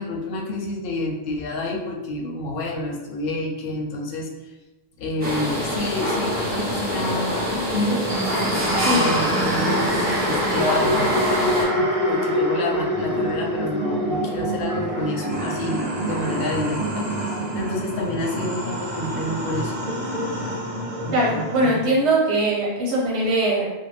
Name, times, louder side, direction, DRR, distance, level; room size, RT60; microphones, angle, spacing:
voice 1, 0.0-4.3 5.0-8.1 8.9-11.2 11.7-19.8, left 2 dB, 65° left, 0 dB, 0.7 m, -28 dB
sound 1, 5.2-11.6, equal, 10° right, 1.0 m, -25 dB
sound 2, 8.1-21.8, equal, 40° right, 0.6 m, -26 dB
voice 2, 8.8-9.2 21.1-23.6, right 1 dB, 85° right, -4 dB, 1.1 m, -21 dB
2.5 x 2.1 x 3.2 m, 1.1 s
omnidirectional pair, 1.1 m